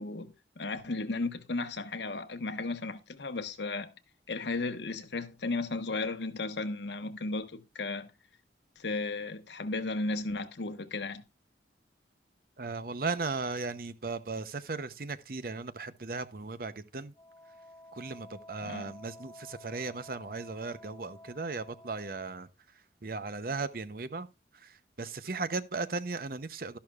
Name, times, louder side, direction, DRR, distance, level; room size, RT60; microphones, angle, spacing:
voice 1, 0.0-3.9 4.3-8.1 8.8-11.2 18.6-18.9, left 3 dB, 80° left, 1.2 m, -35 dB
voice 2, 12.6-17.1 17.9-22.5 23.0-24.3 24.5-26.8, right 3 dB, 55° right, 0.7 m, -36 dB
Wind instrument woodwind instrument, 17.1-22.4, left 1 dB, 15° left, 1.6 m, -52 dB
12.5 x 11.5 x 2.4 m
head